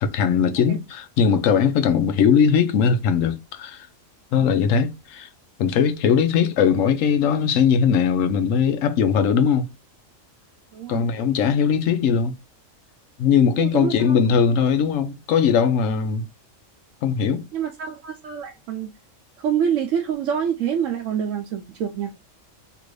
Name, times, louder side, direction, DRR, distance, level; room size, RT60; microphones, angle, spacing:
voice 1, 0.0-3.9 4.3-5.3 5.6-9.7 10.9-12.3 13.2-16.3 17.0-17.4, left 7 dB, 85° left, 1.0 m, -20 dB
voice 2, 10.7-11.1 13.6-14.1 17.5-18.9 19.4-22.1, right 8 dB, 80° right, 0.9 m, -26 dB
2.9 x 2.6 x 3.0 m
omnidirectional pair, 1.3 m